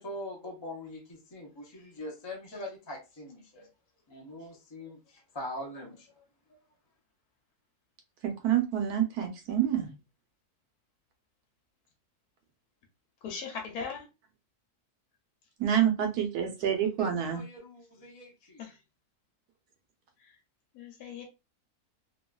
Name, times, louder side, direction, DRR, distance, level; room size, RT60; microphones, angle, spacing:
voice 1, 0.0-3.7 4.1-6.2 17.0-18.6, left 1 dB, 25° left, -1 dB, 0.5 m, -43 dB
voice 2, 8.2-9.9 15.6-17.4, right 9 dB, 80° right, 4 dB, 1.2 m, -27 dB
voice 3, 13.2-14.1 18.6-18.8 20.2-20.4 20.7-21.2, left 5 dB, 85° left, 2 dB, 1.2 m, -39 dB
2.9 x 2.3 x 2.3 m, 0.28 s
omnidirectional pair, 1.6 m